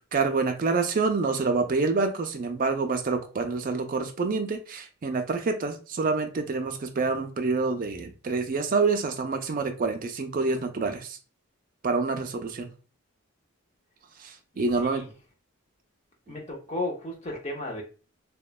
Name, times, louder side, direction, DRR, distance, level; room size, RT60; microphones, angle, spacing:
voice 1, 0.1-11.2 11.8-12.7 14.6-15.0, right 4 dB, 40° right, 6 dB, 0.3 m, -27 dB
voice 2, 14.5-15.1 16.3-17.8, left 1 dB, 30° left, 0 dB, 0.6 m, -34 dB
3.0 x 2.1 x 2.2 m, 0.35 s
head